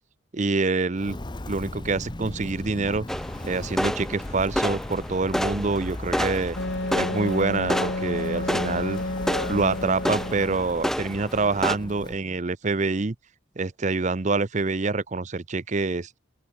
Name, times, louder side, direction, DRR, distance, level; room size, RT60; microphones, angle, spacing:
voice 1, 0.3-1.2 1.5-3.1 3.4-6.6 7.0-9.0 9.5-13.1 13.6-16.1, right 3 dB, 40° right, 0.7 m, -26 dB
Walk footsteps, 0.9-12.2, left 1 dB, 25° left, 0.8 m, -38 dB
sound 1, 3.1-11.8, equal, ahead, 1.3 m, -30 dB
Wind instrument woodwind instrument, 6.6-10.6, left 1 dB, 65° left, 3.0 m, -30 dB
open air
head